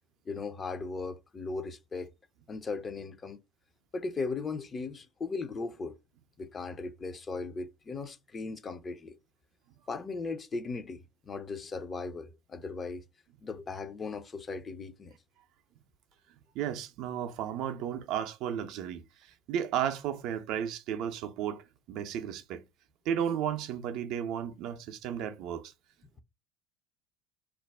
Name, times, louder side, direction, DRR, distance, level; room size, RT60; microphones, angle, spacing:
voice 1, 0.3-2.1 2.5-3.4 3.9-6.0 6.4-9.2 9.9-13.0 13.4-15.2, left 4 dB, 30° left, 0.5 m, -37 dB
voice 2, 16.5-21.6 21.9-22.6 23.1-25.7, right 9 dB, 60° right, 0.4 m, -34 dB
2.4 x 2.0 x 3.2 m
hypercardioid pair, 70°, 0 cm